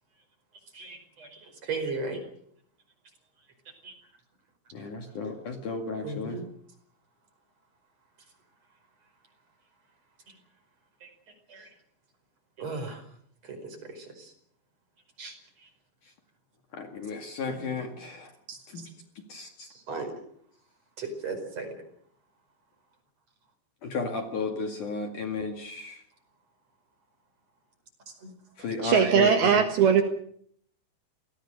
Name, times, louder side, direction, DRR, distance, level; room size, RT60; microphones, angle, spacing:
voice 1, 0.7-2.2 3.8-3.9 6.0-6.4 11.0-11.1 11.5-11.7 12.6-13.0 13.5-14.1 15.2-15.3 17.5-17.6 18.5-18.6 19.9-20.1 21.0-21.7 28.2-28.3, right 3 dB, 35° right, 7 dB, 5.9 m, -36 dB
voice 2, 4.7-6.4 16.7-18.3 18.7-18.8 19.3-19.7 23.8-26.0 28.6-29.5, left 4 dB, 50° left, 5 dB, 3.1 m, -33 dB
voice 3, 28.8-30.0, right 7 dB, 65° right, 6 dB, 3.2 m, -20 dB
28.0 x 19.0 x 6.5 m, 0.63 s
omnidirectional pair, 5.4 m